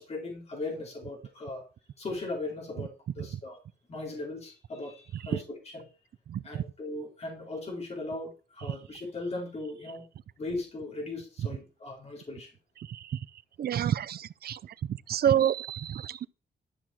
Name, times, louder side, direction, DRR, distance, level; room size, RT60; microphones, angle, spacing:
voice 1, 0.0-1.6 2.0-3.6 3.9-5.9 6.4-10.0 10.4-12.5, left 2 dB, 40° left, 4.4 m, -38 dB
voice 2, 6.3-6.6 12.9-13.2 13.6-14.7 15.1-16.3, right 10 dB, 65° right, 0.5 m, -28 dB
13.0 x 6.3 x 7.4 m
wide cardioid pair, 170°, 17 cm